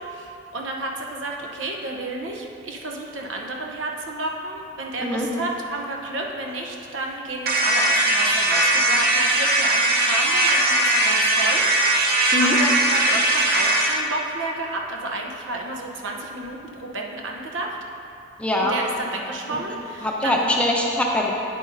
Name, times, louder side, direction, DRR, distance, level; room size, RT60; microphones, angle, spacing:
voice 1, 0.0-12.1 12.4-17.8 18.6-20.5, right 2 dB, 85° right, 1 dB, 0.8 m, -31 dB
sound 1, 7.5-14.0, right 1 dB, 50° right, 0.8 m, -19 dB
voice 2, 18.4-18.8 20.0-21.3, left 1 dB, 5° left, -2 dB, 0.6 m, -22 dB
8.8 x 8.0 x 2.6 m, 2.7 s
head